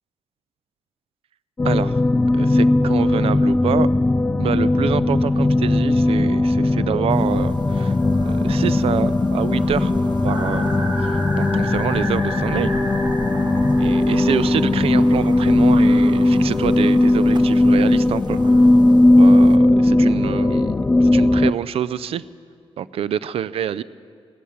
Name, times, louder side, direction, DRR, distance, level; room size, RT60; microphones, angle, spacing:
sound 1, 1.6-21.5, left 2 dB, 20° left, 0.3 m, -17 dB
voice 1, 1.6-2.0 2.3-3.9 4.4-8.0 8.2-9.9 10.2-10.7 11.0-12.7 13.8-18.6 19.1-22.2 22.8-23.8, right 9 dB, 70° right, 18 dB, 0.4 m, -26 dB
sound 2, 7.1-19.6, right 4 dB, 45° right, 0.8 m, -39 dB
sound 3, 10.3-15.8, right 1 dB, 25° right, 1.9 m, -32 dB
17.5 x 8.3 x 7.1 m, 2.2 s
cardioid pair, 95°, 10 cm